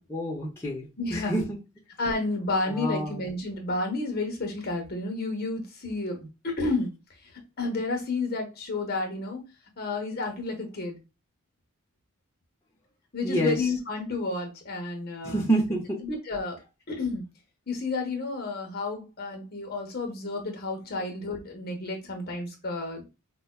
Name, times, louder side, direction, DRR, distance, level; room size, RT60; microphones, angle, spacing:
voice 1, 0.1-1.6 2.6-3.2 13.2-13.7 15.2-16.0, right 1 dB, 10° left, -3 dB, 0.7 m, -28 dB
voice 2, 1.0-1.4 2.0-6.9 7.6-9.4 9.8-11.0 13.1-15.4 16.0-16.6 16.9-17.3 17.7-23.0, left 3 dB, 45° left, 3 dB, 1.0 m, -31 dB
4.9 x 2.2 x 2.3 m, 0.28 s
head